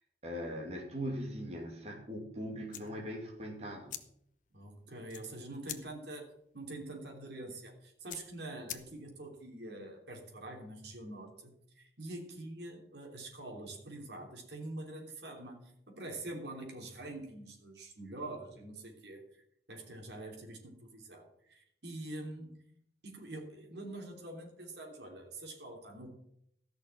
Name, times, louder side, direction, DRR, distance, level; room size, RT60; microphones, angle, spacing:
voice 1, 0.2-4.0, equal, 35° right, 0 dB, 2.5 m, -40 dB
sound 1, 2.6-9.3, left 11 dB, 45° left, 1.0 m, -49 dB
voice 2, 4.5-6.3 6.5-19.4 19.7-22.6 23.0-26.1, right 2 dB, 75° right, 1 dB, 3.3 m, -45 dB
14.0 x 6.4 x 7.7 m, 0.73 s
head